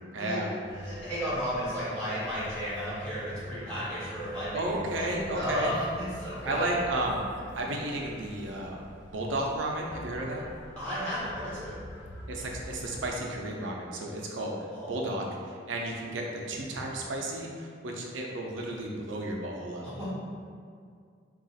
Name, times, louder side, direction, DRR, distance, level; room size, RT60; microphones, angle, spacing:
voice 1, 0.1-0.5 4.5-5.8 6.4-7.2 7.5-8.8 9.1-10.4 12.3-14.6 14.9-15.2 15.7-19.9, right 1 dB, 85° right, -1 dB, 0.5 m, -32 dB
sound 1, 0.7-13.2, left 1 dB, 70° left, 0.4 m, -46 dB
voice 2, 0.8-4.6 5.0-5.1 5.3-5.8 6.2-6.8 10.8-11.7 14.7-15.3 19.8-20.1, equal, 5° left, -12 dB, 1.1 m, -34 dB
3.9 x 2.3 x 2.4 m, 2.2 s
head